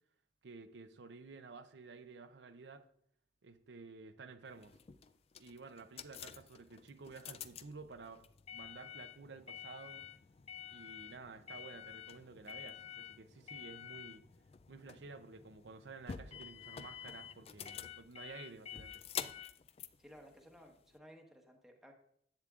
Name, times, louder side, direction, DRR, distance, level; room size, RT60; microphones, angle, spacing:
voice 1, 0.4-2.9 3.4-4.7 5.4-8.3 8.5-10.1 10.6-14.2 14.7-19.0, right 4 dB, 85° right, 0.6 m, -52 dB
sound 1, 4.5-21.0, left 9 dB, 35° left, 0.3 m, -49 dB
voice 2, 20.0-21.9, equal, ahead, 1.1 m, -57 dB
10.5 x 8.2 x 2.4 m
head